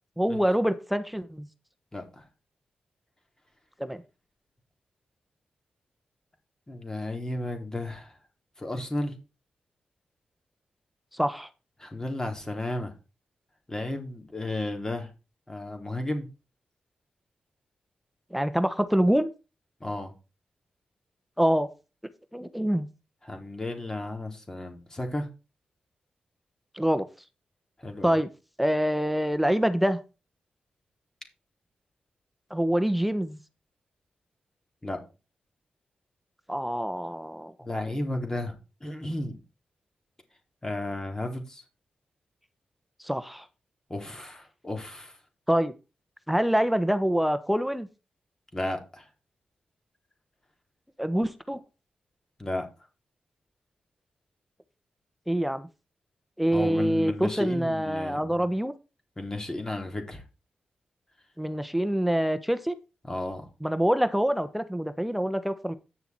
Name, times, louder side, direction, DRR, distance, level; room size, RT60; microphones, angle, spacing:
voice 1, 0.2-1.5 3.8-4.0 11.1-11.5 18.3-19.3 21.4-21.7 22.3-22.9 26.7-27.1 28.0-28.3 28.6-30.0 32.5-33.4 36.5-37.5 43.0-43.5 45.5-45.7 46.3-47.9 51.0-51.6 55.3-55.7 56.4-58.7 61.4-62.7 63.6-65.7, equal, 5° right, 1.1 m, -25 dB
voice 2, 1.9-2.2 6.7-8.1 8.6-9.1 11.8-12.9 13.7-15.1 15.5-16.3 19.8-20.1 23.2-25.3 27.8-28.2 34.8-35.0 37.6-39.4 40.6-41.6 43.9-45.2 48.5-49.1 52.4-52.7 56.5-58.5 59.2-60.2 63.0-63.5, left 1 dB, 20° left, 4.2 m, -33 dB
10.0 x 6.9 x 4.6 m
cardioid pair, 70°, 3 cm